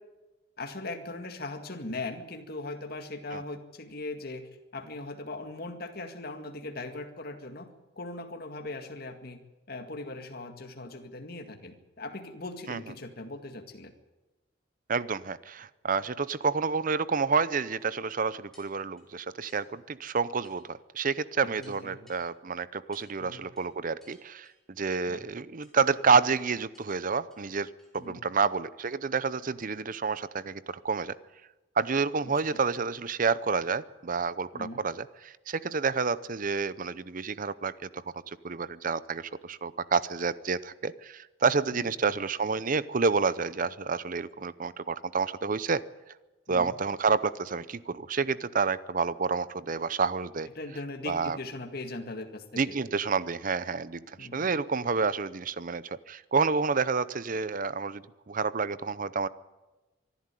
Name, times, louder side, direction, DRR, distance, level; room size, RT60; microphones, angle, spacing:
voice 1, 0.6-7.7 8.0-9.4 9.7-13.9 21.6-22.0 23.2-23.4 25.1-25.2 27.9-28.2 32.3-32.6 34.5-34.8 41.7-41.9 46.5-46.7 50.6-52.8 54.2-54.5, left 2 dB, 50° left, 6 dB, 2.0 m, -39 dB
voice 2, 14.9-24.5 24.8-31.1 31.8-45.8 46.5-50.5 51.1-51.4 52.6-59.3, right 5 dB, 45° right, 17 dB, 0.6 m, -29 dB
sound 1, 17.8-17.9 18.5-19.1 19.5-19.6 20.4-20.7 21.1-21.2 21.6-22.2 22.9-23.1 23.6-23.7 24.0-24.6 24.9-25.2 25.6-26.0 26.7-27.0 27.3-27.4 27.8-28.1 28.4-28.5, left 1 dB, ahead, 5.0 m, -60 dB
24.0 x 11.5 x 9.9 m, 1.1 s
head